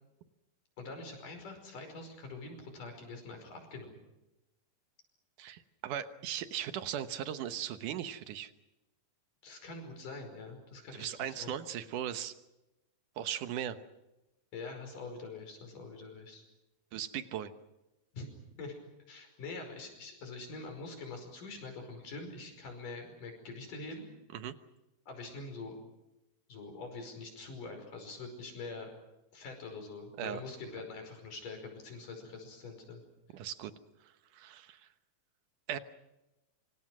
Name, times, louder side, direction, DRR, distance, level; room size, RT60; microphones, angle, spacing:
voice 1, 0.8-4.0 9.4-11.5 14.5-16.4 18.1-18.3 18.6-18.8 19.1-24.1 25.1-25.7 26.5-28.9 29.3-33.0, left 3 dB, 65° left, 5 dB, 6.8 m, -44 dB
voice 2, 5.4-8.5 10.9-12.4 13.2-13.8 16.9-17.5 24.3-24.5 30.2-30.4 33.3-33.7 34.3-34.8 35.7-35.8, right 10 dB, 70° right, 10 dB, 2.5 m, -38 dB
27.0 x 25.5 x 6.2 m, 0.96 s
omnidirectional pair, 4.1 m